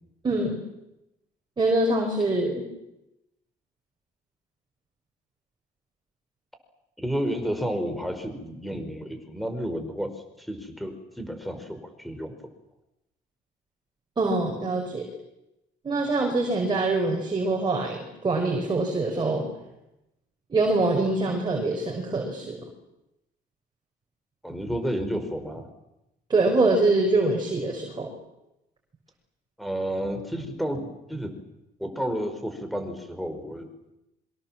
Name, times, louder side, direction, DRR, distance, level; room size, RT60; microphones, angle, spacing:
voice 1, 0.2-0.6 1.6-2.7 14.2-15.1 15.8-19.5 20.5-22.6 26.3-28.1, right 2 dB, 25° right, 1 dB, 5.4 m, -24 dB
voice 2, 7.0-10.1 10.4-12.3 24.4-25.7 29.6-31.3 31.8-33.7, equal, ahead, 7 dB, 5.0 m, -31 dB
26.5 x 24.0 x 7.6 m, 0.91 s
cardioid pair, 110°, 17 cm